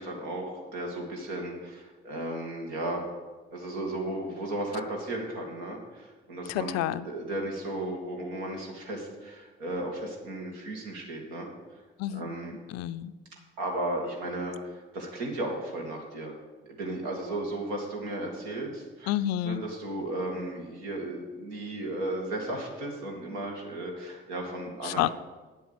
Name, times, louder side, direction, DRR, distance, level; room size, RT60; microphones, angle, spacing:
voice 1, 0.0-3.0 3.5-11.5 12.1-12.5 13.6-16.3 16.8-19.1 19.4-25.0, right 1 dB, 70° right, 0 dB, 2.4 m, -35 dB
voice 2, 6.5-7.1 12.0-12.3 12.7-13.1 19.1-19.6 24.8-25.1, left 13 dB, 55° left, 14 dB, 0.5 m, -29 dB
9.6 x 7.9 x 6.9 m, 1.3 s
figure-of-eight pair, 45°, 31 cm